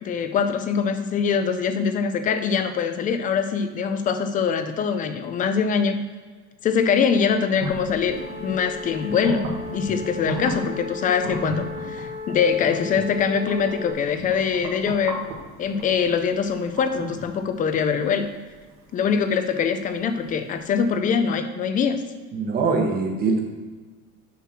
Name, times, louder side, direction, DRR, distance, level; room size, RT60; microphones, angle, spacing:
voice 1, 0.0-6.0 6.6-9.4 9.7-15.2 15.6-18.3 18.9-22.0, left 6 dB, 25° left, 8 dB, 0.5 m, -23 dB
sound 1, 7.6-20.5, right 2 dB, 80° right, 1.7 m, -36 dB
sound 2, 8.1-13.9, left 5 dB, 40° left, 1.4 m, -36 dB
voice 2, 22.3-23.4, right 4 dB, 30° right, 2 dB, 1.2 m, -22 dB
6.8 x 4.7 x 6.0 m, 1.4 s
cardioid pair, 170°, 32 cm